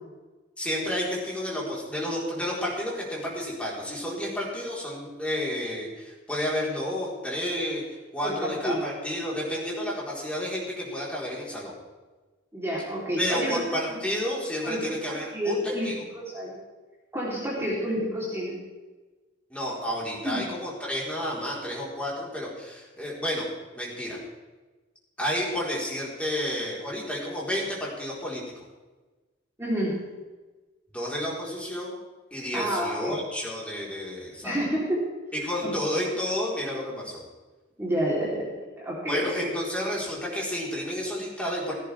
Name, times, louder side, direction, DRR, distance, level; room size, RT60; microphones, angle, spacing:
voice 1, 0.6-11.7 13.2-16.0 19.5-23.5 23.7-24.2 25.2-28.4 30.9-32.0 32.3-34.6 35.3-37.2 39.1-41.8, equal, 5° left, -5 dB, 4.4 m, -31 dB
voice 2, 8.2-8.9 12.5-14.0 14.6-14.9 15.3-16.5 17.1-18.6 20.2-20.4 29.6-30.0 32.5-33.2 34.4-35.0 35.6-35.7 37.8-38.5 38.8-39.5, equal, 15° right, -6 dB, 3.7 m, -29 dB
17.0 x 16.5 x 3.6 m, 1.2 s
head